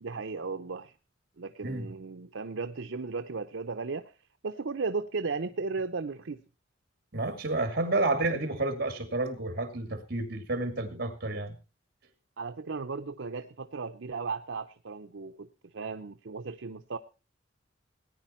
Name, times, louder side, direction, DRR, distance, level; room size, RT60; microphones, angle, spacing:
voice 1, 0.0-0.9 1.4-4.1 4.4-6.4 12.4-15.5 15.7-17.0, right 4 dB, 80° right, 7 dB, 0.7 m, -35 dB
voice 2, 7.1-11.6, right 2 dB, 55° right, 8 dB, 2.4 m, -30 dB
18.0 x 9.9 x 4.3 m, 0.34 s
head